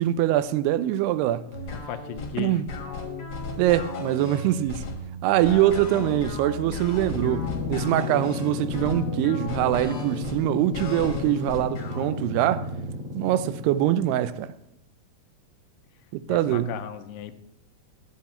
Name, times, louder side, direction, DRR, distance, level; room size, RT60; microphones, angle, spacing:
voice 1, 0.0-1.4 2.4-2.7 3.6-4.9 5.2-12.6 13.1-14.5 16.1-16.7, right 13 dB, 85° right, 2.6 m, -23 dB
sound 1, 1.5-13.0, left 1 dB, 55° left, 1.7 m, -35 dB
voice 2, 1.7-2.6 5.4-6.3 16.3-17.3, left 10 dB, 85° left, 2.6 m, -37 dB
sound 2, 7.0-14.3, left 3 dB, 60° right, 3.4 m, -34 dB
11.0 x 9.5 x 4.3 m
omnidirectional pair, 4.7 m